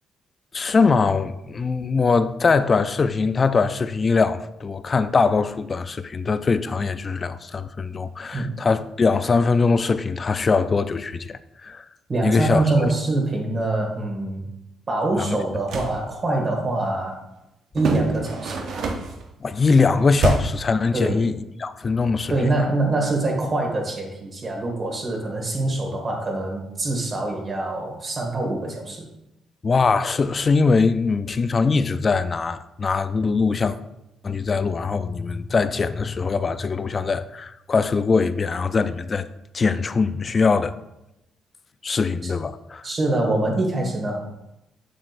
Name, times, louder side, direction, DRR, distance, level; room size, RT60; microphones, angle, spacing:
voice 1, 0.5-11.9 12.2-12.6 15.2-15.4 19.4-22.5 29.6-33.8 34.2-39.3 39.5-40.8 41.8-42.9, left 4 dB, 35° left, 0.4 m, -22 dB
voice 2, 12.1-14.4 14.9-17.2 17.7-18.8 20.9-21.3 22.3-29.1 42.2-42.3 42.8-44.2, right 2 dB, 40° right, 1.9 m, -24 dB
sound 1, 15.5-16.0 17.8-19.2 20.2-20.7, right 4 dB, 70° right, 0.8 m, -26 dB
7.4 x 6.5 x 2.6 m
cardioid pair, 90°, 0 cm